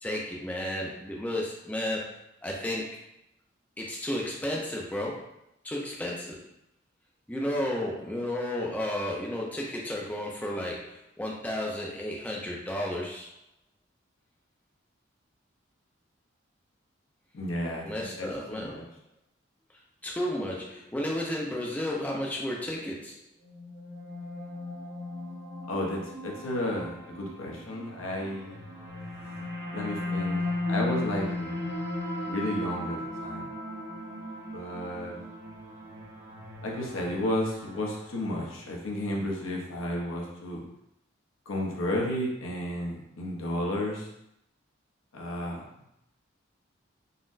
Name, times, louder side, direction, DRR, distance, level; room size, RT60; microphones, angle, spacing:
voice 1, 0.0-2.1 2.4-3.0 3.8-5.3 5.6-6.4 7.3-13.3 17.8-18.8 20.0-23.2, left 1 dB, 10° left, -2 dB, 0.4 m, -32 dB
voice 2, 17.3-18.8 25.7-28.6 29.7-30.4 30.7-31.7 32.2-33.5 34.5-35.2 36.6-40.6 41.5-44.1 45.1-45.6, left 1 dB, 85° left, -1 dB, 0.7 m, -32 dB
sound 1, 23.4-38.8, left 2 dB, 50° right, 0.7 m, -36 dB
3.9 x 2.0 x 2.5 m, 0.81 s
head